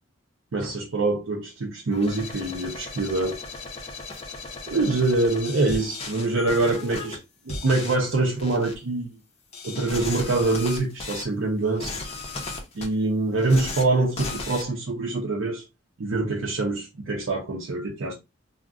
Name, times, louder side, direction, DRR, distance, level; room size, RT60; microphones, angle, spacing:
voice 1, 0.5-3.4 4.7-7.2 7.5-9.1 9.6-12.1 12.7-15.6 16.0-18.1, right 2 dB, 70° right, 0.6 m, -25 dB
sound 1, 1.9-7.2 7.5-8.0 8.4-8.7 9.5-11.2 11.7-12.9 13.4-13.8 14.2-14.6, left 3 dB, 30° left, 0.6 m, -36 dB
2.4 x 2.1 x 3.5 m
head